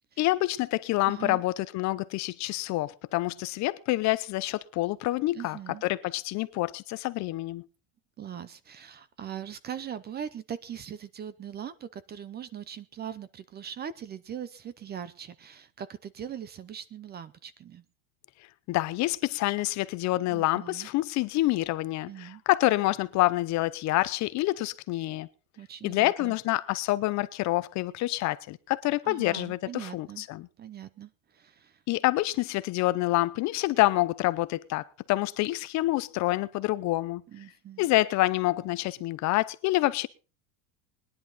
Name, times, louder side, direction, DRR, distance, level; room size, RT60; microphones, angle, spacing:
voice 1, 0.2-7.6 18.7-25.3 25.8-30.5 31.9-37.2 37.8-40.1, left 18 dB, 40° left, 0.7 m, -27 dB
voice 2, 1.1-1.4 5.3-5.8 8.2-17.8 20.3-20.9 22.1-22.4 25.6-26.4 29.0-30.3 30.6-31.8 37.3-37.9, right 9 dB, 25° right, 0.6 m, -41 dB
20.5 x 10.5 x 4.0 m
supercardioid pair, 145°, 43 cm